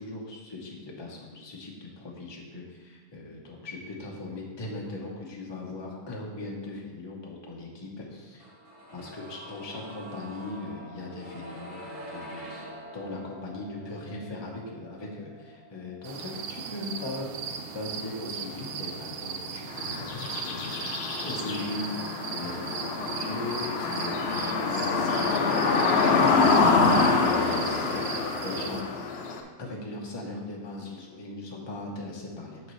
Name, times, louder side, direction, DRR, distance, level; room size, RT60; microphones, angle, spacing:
voice 1, 0.0-8.4 8.9-12.6 12.9-17.3 17.7-28.8 29.6-32.7, left 2 dB, 20° left, -2 dB, 0.9 m, -39 dB
sound 1, 8.4-20.2 20.5-20.6, equal, 15° right, 2.2 m, -46 dB
sound 2, 16.0-28.8, right 6 dB, 80° right, 0.5 m, -38 dB
sound 3, 19.7-29.4, left 4 dB, 55° left, 0.8 m, -26 dB
6.8 x 6.8 x 3.2 m, 1.4 s
omnidirectional pair, 1.6 m